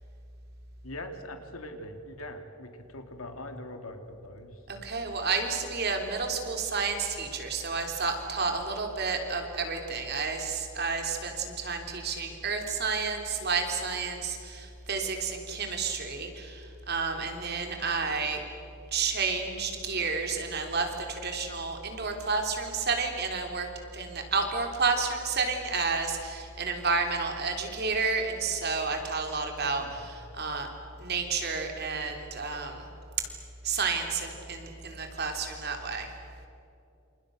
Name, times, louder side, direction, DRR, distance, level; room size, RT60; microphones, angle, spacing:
voice 1, 0.8-4.6 29.6-29.9, left 1 dB, 80° left, 6 dB, 3.0 m, -42 dB
voice 2, 4.7-18.4 18.9-30.7 31.0-32.9 33.6-36.1, right 4 dB, 45° right, 4 dB, 3.8 m, -31 dB
29.0 x 28.5 x 6.6 m, 2.7 s
head